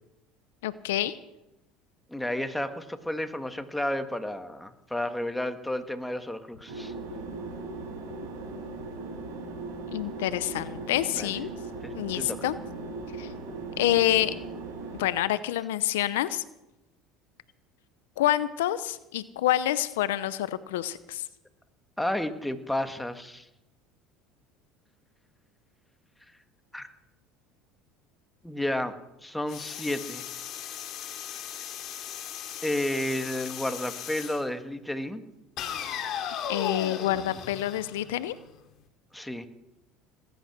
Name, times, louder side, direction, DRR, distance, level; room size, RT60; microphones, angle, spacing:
voice 1, 0.6-1.2 9.9-11.5 11.9-12.6 13.2-13.3 13.8-14.3 14.9-16.4 18.2-21.2 36.5-38.3, left 13 dB, 85° left, 15 dB, 0.7 m, -27 dB
voice 2, 2.1-6.9 11.2-11.4 11.8-12.5 22.0-23.5 26.7-26.9 28.4-28.9 29.2-30.2 31.3-31.4 32.6-35.2 39.1-39.5, left 1 dB, 5° left, 8 dB, 1.8 m, -32 dB
sound 1, 6.7-15.0, right 2 dB, 75° right, 5.5 m, -38 dB
sound 2, 29.5-34.4 35.6-38.5, left 9 dB, 55° left, 2.6 m, -37 dB
19.5 x 11.0 x 6.1 m, 0.92 s
supercardioid pair, 85°, 0 cm